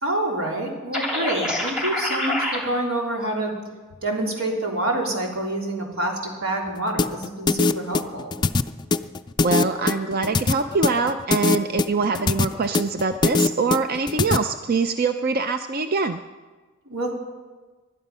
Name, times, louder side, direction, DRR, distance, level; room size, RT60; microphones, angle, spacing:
voice 1, 0.0-3.5 4.0-8.4 16.9-17.1, right 1 dB, 80° right, 0 dB, 3.4 m, -27 dB
sound 1, 0.9-2.6, left 1 dB, 5° right, 2.9 m, -26 dB
sound 2, 7.0-14.4, left 3 dB, 20° left, 0.4 m, -21 dB
voice 2, 9.4-16.2, right 4 dB, 45° right, 8 dB, 0.5 m, -24 dB
20.5 x 12.0 x 5.6 m, 1.3 s
head